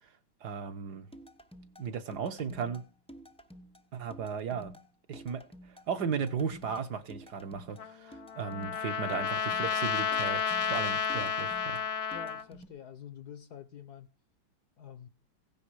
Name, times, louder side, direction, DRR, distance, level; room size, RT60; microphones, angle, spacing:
voice 1, 0.4-1.1 1.8-2.8 3.9-4.7 5.1-5.4 5.7-11.8, right 6 dB, 55° right, 1.5 m, -36 dB
sound 1, 1.1-12.7, equal, 5° left, 0.4 m, -52 dB
Trumpet, 7.8-12.4, left 7 dB, 75° left, 0.5 m, -31 dB
voice 2, 12.1-14.1 14.8-15.1, left 8 dB, 60° left, 1.2 m, -47 dB
16.5 x 10.5 x 4.8 m
omnidirectional pair, 2.3 m